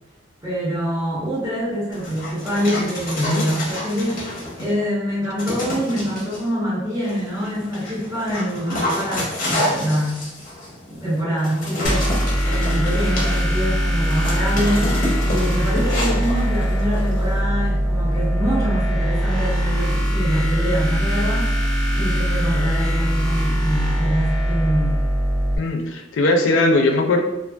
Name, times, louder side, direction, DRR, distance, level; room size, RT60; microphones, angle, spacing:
voice 1, 0.4-10.3 10.9-25.0, equal, 20° right, -11 dB, 1.3 m, -25 dB
Dog, 1.9-4.8 5.4-6.4 7.0-17.4, left 1 dB, 45° left, 0.8 m, -29 dB
sound 1, 11.8-25.6, equal, 5° left, 0.5 m, -21 dB
voice 2, 25.6-27.2, left 2 dB, 85° left, 3 dB, 0.4 m, -19 dB
2.4 x 2.4 x 2.3 m, 1.0 s
head